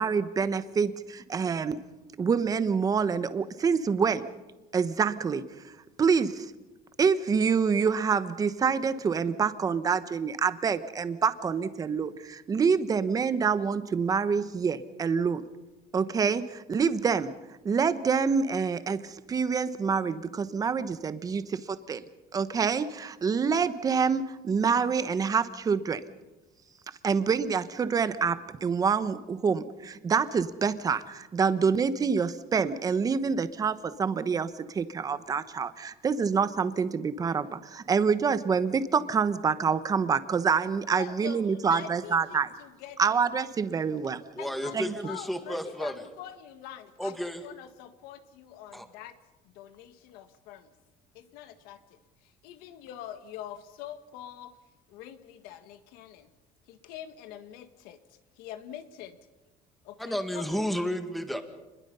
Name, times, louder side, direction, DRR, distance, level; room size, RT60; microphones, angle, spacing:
voice 1, 0.0-1.8 2.2-4.2 4.7-5.4 6.0-6.5 7.0-15.4 15.9-17.3 17.6-22.0 22.3-26.0 27.0-42.5 43.0-44.2 44.7-44.9, right 6 dB, 25° right, 12 dB, 1.1 m, -26 dB
voice 2, 41.0-43.3 44.4-49.2 49.4-50.7 51.1-54.6 54.9-56.3 56.7-59.2 59.8-60.9, left 11 dB, 85° left, 9 dB, 1.8 m, -45 dB
voice 3, 44.4-45.9 47.0-47.4 48.7-48.9 60.0-61.4, equal, ahead, 7 dB, 1.8 m, -32 dB
28.0 x 21.5 x 5.6 m, 1.1 s
cardioid pair, 155°, 15 cm